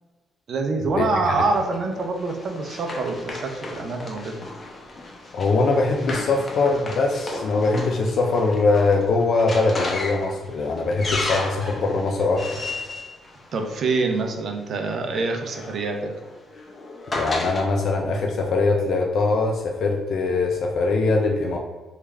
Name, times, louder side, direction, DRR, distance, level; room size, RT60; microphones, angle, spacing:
voice 1, 0.5-4.4 13.5-16.1, right 3 dB, 55° right, 4 dB, 0.5 m, -25 dB
Run, 1.5-14.2 15.2-17.6, left 2 dB, 30° left, 0.7 m, -34 dB
voice 2, 5.3-12.6 17.1-21.6, left 3 dB, 65° left, 1 dB, 0.4 m, -22 dB
3.4 x 2.4 x 3.2 m, 1.3 s
cardioid pair, 90°, 0 cm